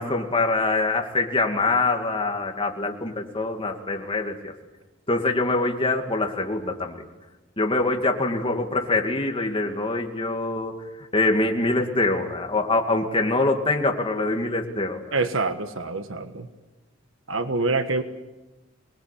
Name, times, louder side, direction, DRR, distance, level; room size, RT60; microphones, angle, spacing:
voice 1, 0.0-4.5 5.1-7.0 7.6-10.8 11.1-15.0, left 2 dB, 25° left, 3 dB, 2.3 m, -24 dB
voice 2, 15.1-16.5 17.3-18.0, right 3 dB, 75° right, 9 dB, 1.4 m, -26 dB
26.0 x 20.5 x 8.4 m, 1.1 s
head